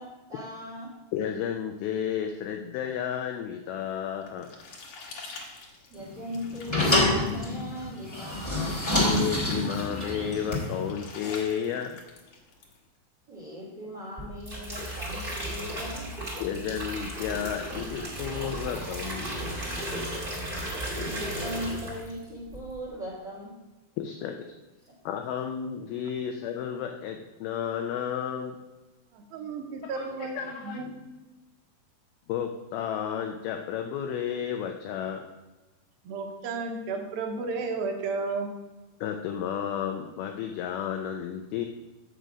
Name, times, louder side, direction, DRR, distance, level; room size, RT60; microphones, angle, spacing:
voice 1, 0.0-0.9 5.9-9.0 13.3-16.1 21.0-23.6 24.8-24.9, equal, 55° right, -6 dB, 1.2 m, -39 dB
voice 2, 1.1-4.5 9.0-12.0 16.4-19.4 24.0-24.5 25.1-28.6 29.8-30.8 32.3-35.3 39.0-41.7, left 8 dB, 90° left, 4 dB, 2.1 m, -32 dB
sound 1, 3.9-12.8, left 4 dB, 65° left, 1.9 m, -46 dB
sound 2, 6.0-10.9, left 1 dB, 10° left, 0.7 m, -27 dB
sound 3, 14.2-22.2 22.5-22.8, right 1 dB, 35° right, 0.8 m, -35 dB
voice 3, 29.1-31.0 36.0-38.5, right 4 dB, 75° right, 3 dB, 2.2 m, -33 dB
7.6 x 6.6 x 5.0 m, 1.1 s
omnidirectional pair, 5.0 m